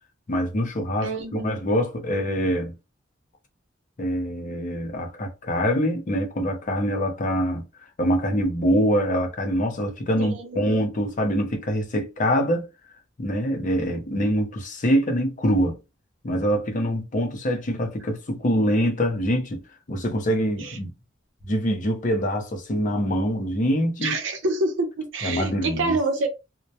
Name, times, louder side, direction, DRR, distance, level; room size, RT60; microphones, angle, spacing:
voice 1, 0.3-2.7 4.0-7.6 8.0-12.7 13.2-15.8 16.2-19.6 19.9-20.9 21.4-24.1 25.2-26.0, equal, 40° left, 0.6 m, -24 dB
voice 2, 1.0-1.6 10.2-10.8 20.6-20.7 24.0-26.3, right 2 dB, 75° right, 0.7 m, -27 dB
2.2 x 2.1 x 2.6 m
head